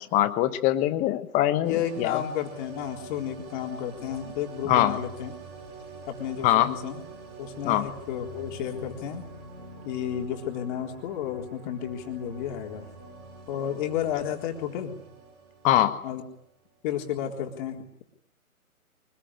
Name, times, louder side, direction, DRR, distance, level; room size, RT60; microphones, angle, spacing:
voice 1, 0.0-2.2 4.6-5.0 6.4-6.7 7.6-7.8 15.6-16.0, left 13 dB, 15° left, 12 dB, 1.2 m, -23 dB
sound 1, 1.6-16.5 16.8-16.9, right 3 dB, 25° right, 6.5 m, -45 dB
voice 2, 1.7-5.4 6.1-7.0 7.4-9.2 9.8-12.9 13.5-14.9 16.0-16.2 16.8-17.9, left 10 dB, 30° left, 3 dB, 3.9 m, -32 dB
25.0 x 20.5 x 10.0 m, 0.70 s
figure-of-eight pair, 135°, 44 cm